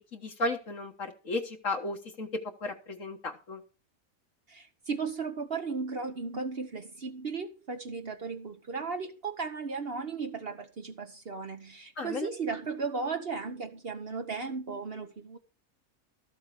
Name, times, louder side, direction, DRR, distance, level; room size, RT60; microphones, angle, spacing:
voice 1, 0.1-2.3 2.6-3.6 12.0-12.3, left 2 dB, 65° left, 1.8 m, -34 dB
voice 2, 4.5-15.4, right 4 dB, 50° right, 1.1 m, -36 dB
13.5 x 7.3 x 5.0 m
omnidirectional pair, 1.5 m